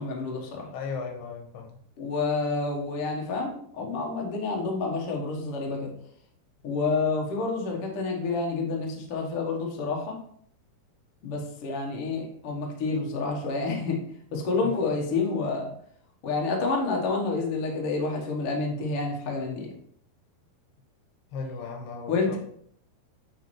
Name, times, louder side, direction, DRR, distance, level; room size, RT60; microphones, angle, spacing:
voice 1, 0.0-0.7 2.0-5.9 6.6-10.2 11.2-14.0 14.3-15.7 16.2-19.7 22.1-22.4, left 3 dB, 65° left, 0 dB, 1.4 m, -29 dB
voice 2, 0.7-1.7 14.6-14.7 21.3-22.4, left 5 dB, 90° left, 2 dB, 3.2 m, -36 dB
8.4 x 4.3 x 3.2 m, 0.63 s
omnidirectional pair, 4.5 m